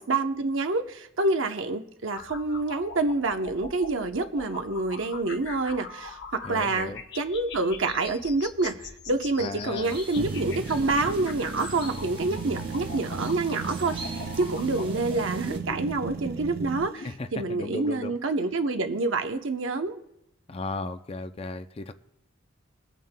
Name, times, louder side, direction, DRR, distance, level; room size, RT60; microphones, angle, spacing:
voice 1, 0.0-20.0, right 3 dB, 65° right, 7 dB, 0.8 m, -27 dB
sound 1, 2.1-17.1, left 4 dB, 50° left, 0.8 m, -42 dB
voice 2, 6.4-7.0 9.4-10.0 17.0-18.1 20.5-21.9, left 3 dB, 25° left, 9 dB, 0.4 m, -35 dB
sound 2, 9.8-15.6, right 3 dB, 25° right, 1.0 m, -44 dB
sound 3, 10.2-16.9, right 4 dB, 45° right, 0.4 m, -35 dB
22.5 x 9.1 x 2.2 m, 0.81 s
head